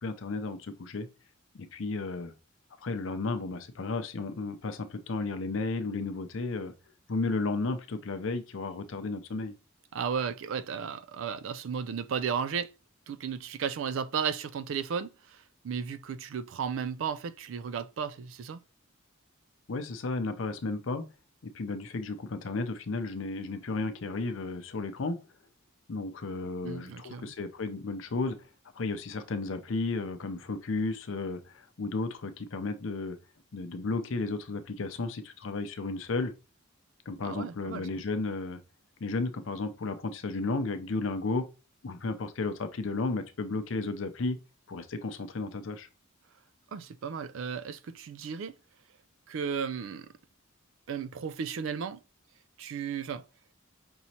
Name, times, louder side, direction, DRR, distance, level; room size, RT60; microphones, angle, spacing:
voice 1, 0.0-1.1 1.5-2.3 2.8-6.7 7.1-9.5 19.7-21.1 21.4-25.2 25.9-28.4 28.7-33.2 33.5-36.3 37.1-38.6 39.0-41.5 41.8-44.4 44.7-45.9, left 3 dB, 65° left, 0.6 m, -33 dB
voice 2, 9.9-12.7 13.1-18.6 26.6-27.3 37.2-37.8 46.7-48.6 49.3-50.1 50.9-52.0 52.6-53.3, right 6 dB, 65° right, 0.3 m, -34 dB
5.4 x 3.0 x 2.8 m
head